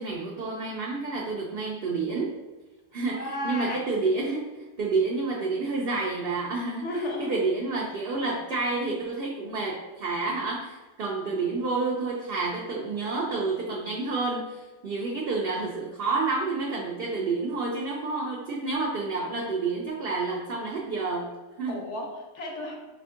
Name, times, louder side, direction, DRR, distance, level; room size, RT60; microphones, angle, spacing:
voice 1, 0.0-2.4 2.9-21.8, right 3 dB, 70° right, -2 dB, 0.5 m, -29 dB
voice 2, 3.1-3.8 6.8-7.5 21.7-22.7, left 2 dB, 60° left, 0 dB, 0.9 m, -33 dB
4.9 x 2.6 x 2.4 m, 1.2 s
omnidirectional pair, 1.5 m